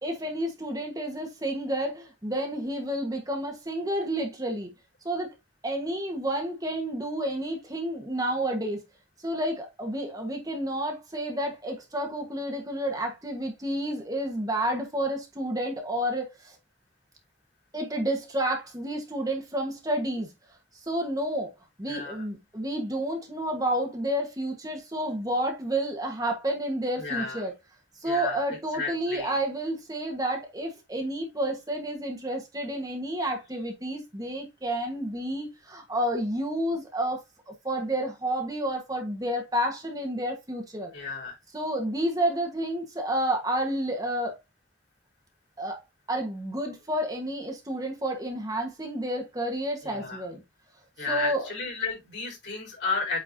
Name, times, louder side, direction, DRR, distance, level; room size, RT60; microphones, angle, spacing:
voice 1, 0.0-4.7 5.0-5.3 5.6-8.8 9.2-16.6 17.7-20.3 20.8-21.5 21.8-27.5 28.0-37.2 37.5-40.9 41.5-44.4 45.6-45.8 46.1-50.4 51.1-51.5, right 1 dB, 20° right, 1.4 m, -30 dB
voice 2, 27.0-27.4 28.0-28.4 28.7-29.3 40.9-41.3 49.8-50.2 51.0-53.2, left 4 dB, 65° left, 4.3 m, -32 dB
8.6 x 4.5 x 2.7 m
head